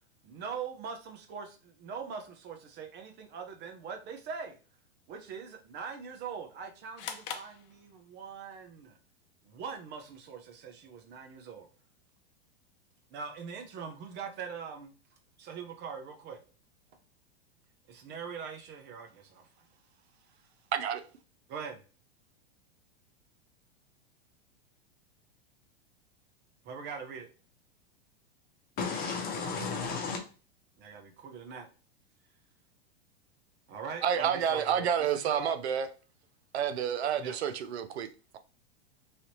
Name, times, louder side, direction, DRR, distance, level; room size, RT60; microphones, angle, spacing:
voice 1, 0.2-4.6 5.1-9.0 9.4-11.7 13.1-14.9 15.4-16.4 17.9-19.4 21.5-21.8 26.6-27.3 30.8-31.7 33.7-35.5 37.1-37.4, right 6 dB, 35° right, 0.7 m, -42 dB
sound 1, 7.0-8.4, left 7 dB, 55° left, 0.7 m, -42 dB
voice 2, 20.7-21.0 34.0-35.9 36.5-38.1, right 8 dB, 80° right, 0.5 m, -29 dB
voice 3, 28.8-30.2, left 5 dB, 30° left, 1.0 m, -33 dB
3.3 x 2.8 x 2.7 m
hypercardioid pair, 110°, 32 cm